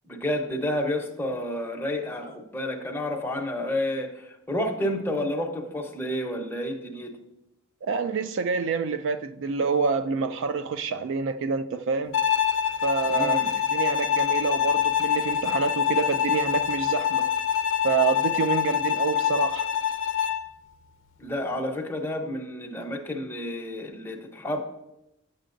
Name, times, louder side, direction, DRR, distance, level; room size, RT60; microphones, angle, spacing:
voice 1, 0.0-7.1 13.1-13.5 21.2-24.6, left 1 dB, 10° left, 0.9 m, -30 dB
voice 2, 7.8-12.2 12.8-17.3 17.8-19.7, right 5 dB, 60° right, 0.3 m, -27 dB
Bowed string instrument, 12.1-20.5, left 9 dB, 60° left, 0.5 m, -25 dB
10.0 x 7.4 x 2.6 m
head